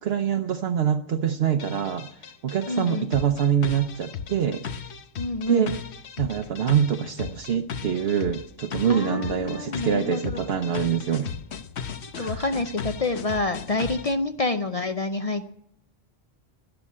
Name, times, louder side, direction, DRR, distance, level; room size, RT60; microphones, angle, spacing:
voice 1, 0.0-2.1 2.4-4.9 5.5-5.8 6.2-11.3 12.2-12.4, right 8 dB, 70° right, 5 dB, 0.9 m, -25 dB
sound 1, 1.6-14.2, left 7 dB, 85° left, 1.1 m, -36 dB
voice 2, 2.7-3.1 5.2-5.7 8.9-10.5 12.2-15.5, left 3 dB, 40° left, 7 dB, 0.6 m, -28 dB
12.5 x 10.5 x 8.5 m, 0.76 s
omnidirectional pair, 1.1 m